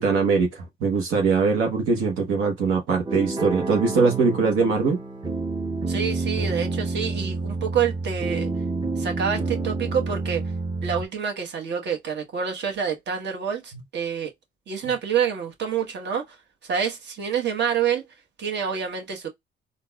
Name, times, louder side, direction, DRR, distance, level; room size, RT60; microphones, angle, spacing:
voice 1, 0.0-5.0, right 4 dB, 85° right, 1.0 m, -22 dB
sound 1, 3.1-11.1, right 3 dB, 20° right, 0.7 m, -29 dB
voice 2, 5.9-8.5 9.0-10.4 10.8-14.3 14.7-16.4 16.6-18.0 18.4-19.3, right 7 dB, 60° right, 1.3 m, -27 dB
4.0 x 2.3 x 2.3 m
cardioid pair, 90°, 20 cm